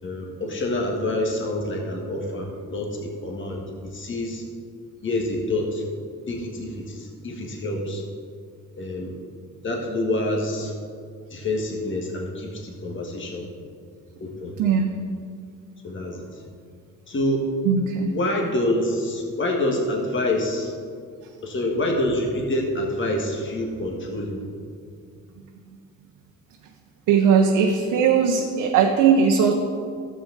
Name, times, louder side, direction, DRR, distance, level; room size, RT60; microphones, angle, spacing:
voice 1, 0.0-4.4 5.0-5.8 6.3-8.0 8.8-9.2 9.6-10.7 11.3-13.4 14.2-14.6 15.8-16.3 17.1-17.5 18.1-20.7 21.4-24.5, left 1 dB, 40° left, 0 dB, 1.6 m, -27 dB
voice 2, 14.6-15.0 17.6-18.1 27.1-29.5, right 6 dB, 85° right, 2 dB, 0.8 m, -19 dB
12.0 x 7.8 x 4.0 m, 2.2 s
cardioid pair, 90°, 30 cm